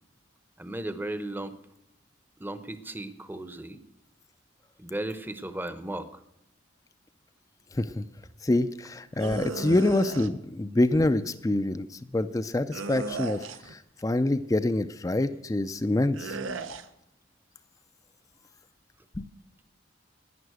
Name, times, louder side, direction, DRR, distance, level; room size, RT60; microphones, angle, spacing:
voice 1, 0.6-1.6 2.4-3.8 4.8-6.2, right 1 dB, 10° right, 12 dB, 0.7 m, -35 dB
voice 2, 8.4-11.9 12.1-16.4 19.2-19.3, left 1 dB, 15° left, 11 dB, 0.4 m, -26 dB
sound 1, 9.2-10.3 12.7-13.8 16.1-16.9, right 3 dB, 85° right, 0.8 m, -35 dB
11.0 x 9.7 x 7.9 m, 0.84 s
head